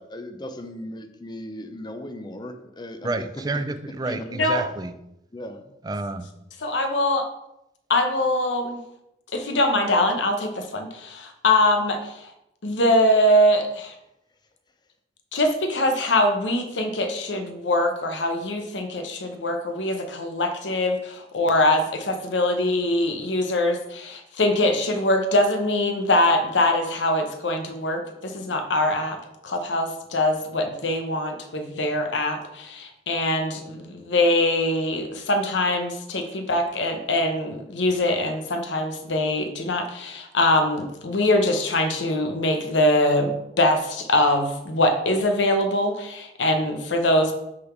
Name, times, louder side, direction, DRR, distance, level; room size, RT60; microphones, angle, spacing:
voice 1, 0.0-3.2 4.1-4.3 5.3-5.7, left 1 dB, 25° left, 7 dB, 0.6 m, -37 dB
voice 2, 3.0-5.0 5.8-6.3, right 2 dB, 20° right, 11 dB, 0.4 m, -29 dB
voice 3, 6.6-7.2 7.9-8.8 9.3-12.3 12.6-13.9 15.3-29.2 29.4-47.3, left 1 dB, 90° left, 5 dB, 0.9 m, -23 dB
6.3 x 4.0 x 5.9 m, 0.85 s
head